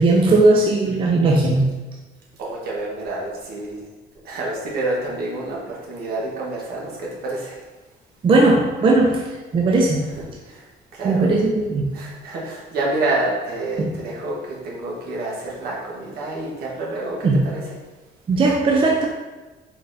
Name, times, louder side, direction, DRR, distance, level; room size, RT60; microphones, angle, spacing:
voice 1, 0.0-1.7 8.2-9.3 9.5-10.1 11.0-11.9 13.8-14.0 17.2-17.4 18.3-19.1, right 2 dB, 30° right, -1 dB, 0.5 m, -17 dB
voice 2, 2.4-3.8 4.2-7.6 10.1-10.6 10.9-11.4 11.9-17.1 17.4-17.6, right 2 dB, 65° right, -3 dB, 1.2 m, -28 dB
4.1 x 3.9 x 2.6 m, 1.2 s
cardioid pair, 110°, 17 cm